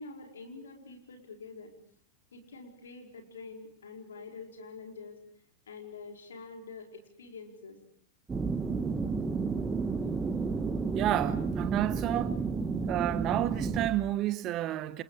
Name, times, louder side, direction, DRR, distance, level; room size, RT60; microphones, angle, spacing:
voice 1, 0.0-1.7 2.3-5.2 5.7-7.8, left 4 dB, 65° left, 4.9 m, -46 dB
sound 1, 8.3-13.9, right 4 dB, 15° right, 1.8 m, -31 dB
voice 2, 10.9-12.5 12.9-15.0, right 13 dB, 35° right, 1.2 m, -30 dB
29.0 x 27.5 x 4.9 m
figure-of-eight pair, 90°, 0 cm